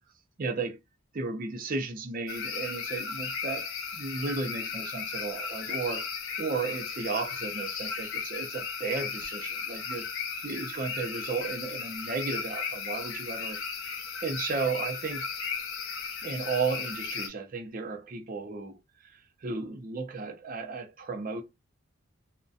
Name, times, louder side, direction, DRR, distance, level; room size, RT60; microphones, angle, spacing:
voice 1, 0.4-0.8 1.1-13.9 14.2-15.3 16.2-21.4, right 4 dB, 40° right, 0.4 m, -34 dB
sound 1, 2.3-17.3, left 6 dB, 65° left, 0.6 m, -36 dB
2.5 x 2.1 x 2.3 m
head